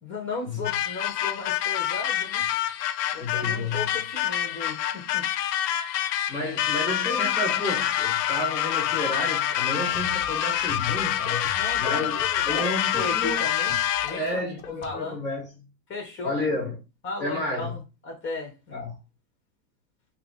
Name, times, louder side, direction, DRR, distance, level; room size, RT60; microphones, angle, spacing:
voice 1, 0.0-2.4 3.1-5.3 11.5-13.7 14.0-14.4 14.8-15.2 15.9-16.4 17.0-18.8, left 3 dB, 25° left, 1.5 m, -36 dB
sound 1, 0.6-14.3, left 11 dB, 90° left, 0.6 m, -27 dB
voice 2, 3.2-3.9 6.3-11.4 11.8-12.2 12.4-13.5 14.1-15.5 16.2-16.8 17.2-17.8 18.7-18.9, left 2 dB, 10° left, 2.0 m, -31 dB
sound 2, 9.8-15.0, left 5 dB, 45° left, 0.7 m, -42 dB
4.9 x 2.2 x 3.0 m
hypercardioid pair, 135°, 49 cm